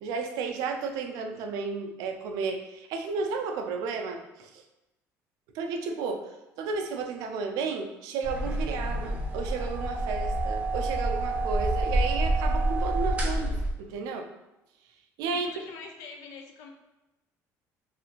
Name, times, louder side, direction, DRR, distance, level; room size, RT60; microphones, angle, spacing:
voice 1, 0.0-4.6 5.5-14.3 15.2-15.5, right 4 dB, 85° right, 5 dB, 0.4 m, -33 dB
sound 1, 8.2-13.7, right 1 dB, 20° right, 0.5 m, -28 dB
voice 2, 15.3-16.7, left 5 dB, 85° left, 3 dB, 0.5 m, -44 dB
2.6 x 2.4 x 2.8 m, 0.98 s
cardioid pair, 125°, 6 cm